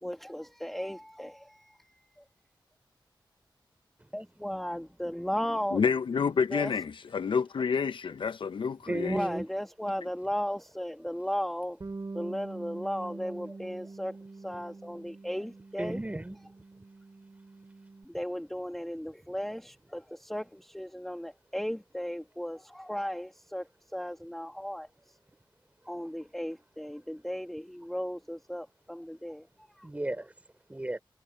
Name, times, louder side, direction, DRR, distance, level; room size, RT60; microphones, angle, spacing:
voice 1, 0.0-2.2 4.1-5.8 6.4-6.7 9.0-11.8 12.1-16.0 18.0-25.2 25.9-29.9, equal, 5° left, 1.4 m, -36 dB
voice 2, 5.7-9.2, left 6 dB, 70° left, 0.6 m, -29 dB
voice 3, 8.9-9.4 15.8-16.4 29.8-30.3 30.7-31.0, right 1 dB, 15° right, 3.6 m, -33 dB
Bass guitar, 11.8-18.1, right 3 dB, 40° right, 7.8 m, -44 dB
wide cardioid pair, 120°, 9 cm